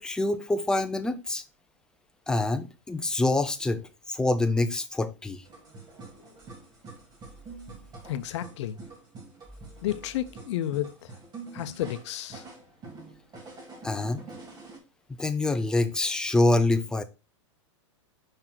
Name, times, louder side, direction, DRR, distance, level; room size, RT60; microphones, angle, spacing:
voice 1, 0.0-1.4 2.3-5.4 13.8-14.2 15.2-17.0, left 2 dB, 5° left, 0.4 m, -26 dB
sound 1, 5.4-14.8, right 3 dB, 25° right, 1.7 m, -46 dB
voice 2, 8.1-8.8 9.8-11.1 11.5-12.5, left 12 dB, 65° left, 0.7 m, -31 dB
5.5 x 3.8 x 4.5 m
hypercardioid pair, 130°, 16 cm